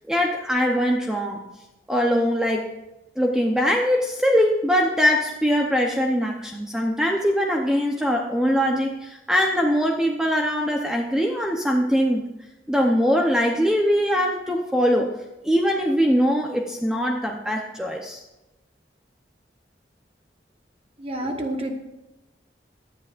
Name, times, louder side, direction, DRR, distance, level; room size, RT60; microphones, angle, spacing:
voice 1, 0.0-1.4 1.9-2.7 3.2-12.3 12.7-15.1 15.4-18.2, equal, 5° right, 0 dB, 0.8 m, -22 dB
voice 2, 21.0-21.7, right 1 dB, 30° right, 3 dB, 1.4 m, -28 dB
17.0 x 11.0 x 2.5 m, 0.98 s
head